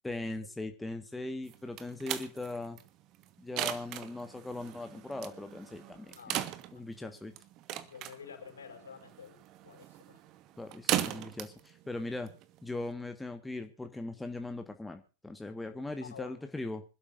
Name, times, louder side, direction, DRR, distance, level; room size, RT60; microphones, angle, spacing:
voice 1, 0.0-2.8 3.4-6.4 6.7-7.3 10.6-12.3 12.6-16.8, left 2 dB, 5° left, 6 dB, 1.5 m, -39 dB
sound 1, 1.5-12.9, right 13 dB, 40° right, 1.4 m, -39 dB
voice 2, 6.1-6.5 6.7-7.2 7.8-10.2 16.0-16.4, left 6 dB, 70° left, 4 dB, 5.8 m, -50 dB
26.0 x 12.5 x 2.6 m, 0.34 s
figure-of-eight pair, 90°, 0 cm